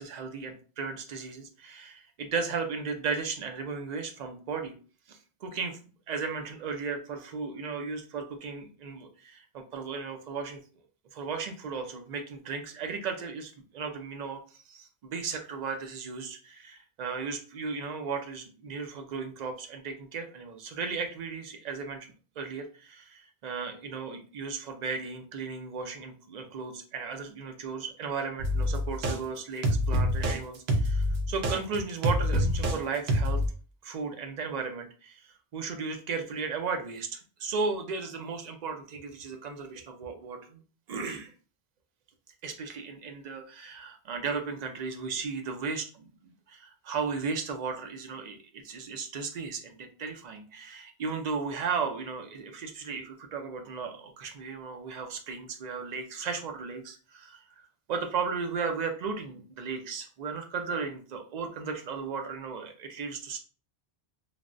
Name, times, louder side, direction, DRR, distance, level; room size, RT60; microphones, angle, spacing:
voice 1, 0.0-4.7 5.1-5.8 6.1-10.6 11.1-14.4 14.7-22.1 22.4-33.4 33.8-40.6 40.9-41.3 42.4-57.4 57.9-63.4, right 5 dB, 55° right, 4 dB, 0.5 m, -35 dB
sound 1, 28.4-29.2 29.6-30.4 30.7-32.8 33.1-33.5, equal, 80° right, 0.8 m, -26 dB
3.3 x 2.0 x 2.4 m, 0.38 s
omnidirectional pair, 1.1 m